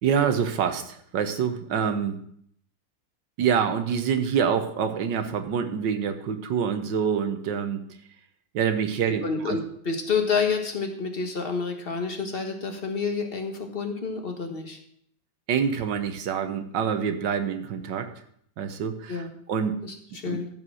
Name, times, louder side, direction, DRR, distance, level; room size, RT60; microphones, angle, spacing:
voice 1, 0.0-2.2 3.4-7.8 8.5-9.6 15.5-18.1 18.6-19.2 19.5-19.7 20.3-20.4, right 7 dB, 65° right, 8 dB, 1.6 m, -26 dB
voice 2, 9.1-14.8 19.1-19.3 19.8-20.5, left 5 dB, 30° left, 3 dB, 1.3 m, -29 dB
14.0 x 4.8 x 6.3 m, 0.66 s
omnidirectional pair, 2.2 m